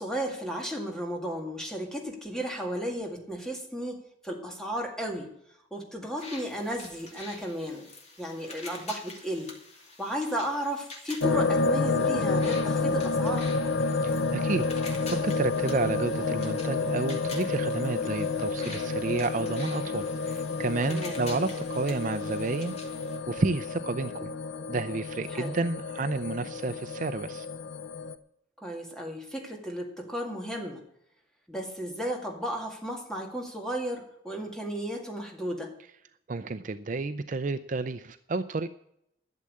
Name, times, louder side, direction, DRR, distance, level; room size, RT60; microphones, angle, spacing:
voice 1, 0.0-5.3 5.7-7.9 8.2-9.6 10.0-13.5 20.9-21.2 25.3-25.6 28.6-30.8 31.5-35.8, equal, 5° left, 1 dB, 2.1 m, -34 dB
sound 1, 6.2-23.2, left 3 dB, 35° left, 2.6 m, -47 dB
sound 2, 11.2-28.1, left 3 dB, 90° left, 0.7 m, -30 dB
voice 2, 14.0-14.7 15.2-22.8 23.3-24.3 24.7-27.5 36.3-38.7, right 3 dB, 40° right, 11 dB, 0.5 m, -31 dB
12.0 x 7.6 x 8.5 m, 0.76 s
head